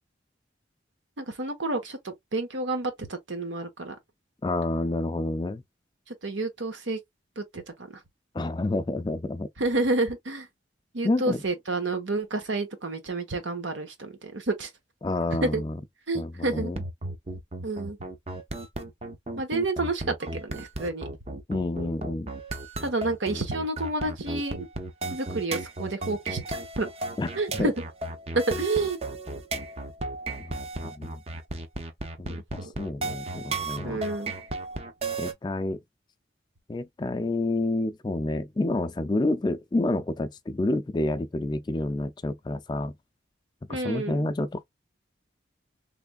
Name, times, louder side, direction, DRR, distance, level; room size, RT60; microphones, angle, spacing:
voice 1, 1.2-3.9 6.2-7.0 7.4-7.9 9.6-10.5 10.9-14.7 15.4-15.6 16.1-16.7 17.6-18.0 19.4-21.0 22.8-24.7 25.1-26.9 27.4-27.7 28.3-29.0 32.3-32.7 33.8-34.3 43.7-44.3, right 2 dB, 80° right, 1.1 m, -29 dB
voice 2, 4.4-5.6 8.3-9.5 11.0-11.4 15.0-15.8 16.1-16.8 21.5-22.3 27.2-27.7 30.4-31.2 32.2-34.0 35.2-35.8 36.7-42.9 43.7-44.6, left 2 dB, 25° left, 0.3 m, -29 dB
sound 1, 16.6-35.3, right 2 dB, 30° right, 0.5 m, -35 dB
3.4 x 3.2 x 2.3 m
head